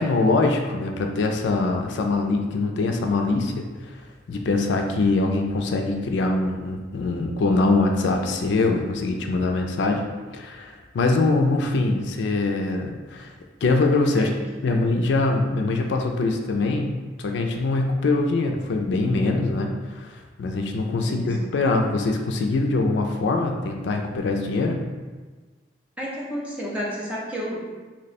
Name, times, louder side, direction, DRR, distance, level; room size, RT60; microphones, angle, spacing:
voice 1, 0.0-4.0 4.3-10.1 10.3-13.3 13.6-14.3 14.6-24.8, left 3 dB, 70° left, 3 dB, 0.3 m, -23 dB
voice 2, 21.1-21.5 26.0-27.7, equal, 5° right, -6 dB, 0.6 m, -31 dB
2.9 x 2.1 x 4.1 m, 1.3 s
head